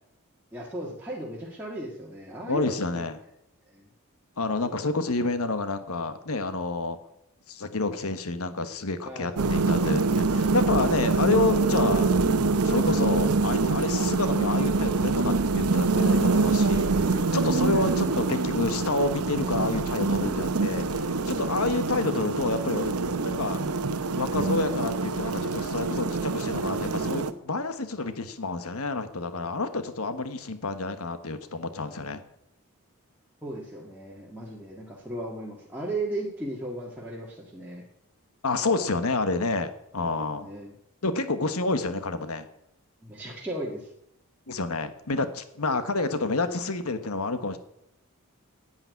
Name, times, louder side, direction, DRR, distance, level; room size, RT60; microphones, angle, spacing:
voice 1, 0.5-3.0 3.7-3.9 9.0-9.9 17.5-18.0 33.4-37.8 40.4-40.7 43.0-43.9, right 1 dB, 10° right, -5 dB, 1.9 m, -36 dB
voice 2, 2.4-3.2 4.4-7.0 7.5-12.1 12.6-22.9 23.2-23.6 24.2-32.2 38.4-40.5 41.0-42.5 44.5-47.6, left 3 dB, 80° left, 9 dB, 1.3 m, -29 dB
sound 1, 9.4-27.3, right 3 dB, 85° right, 0.9 m, -25 dB
10.5 x 8.9 x 9.5 m, 0.78 s
head